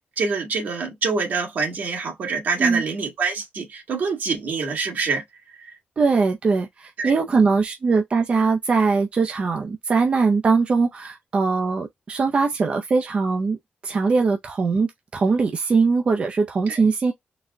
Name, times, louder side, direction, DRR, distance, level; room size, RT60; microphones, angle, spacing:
voice 1, 0.2-5.2 5.5-5.8 7.0-7.2 16.7-16.9, right 4 dB, 75° right, 1.8 m, -26 dB
voice 2, 6.0-13.6 13.8-14.9 15.1-17.1, right 4 dB, 40° right, 0.5 m, -21 dB
4.0 x 2.2 x 3.5 m
wide cardioid pair, 175°, 3 cm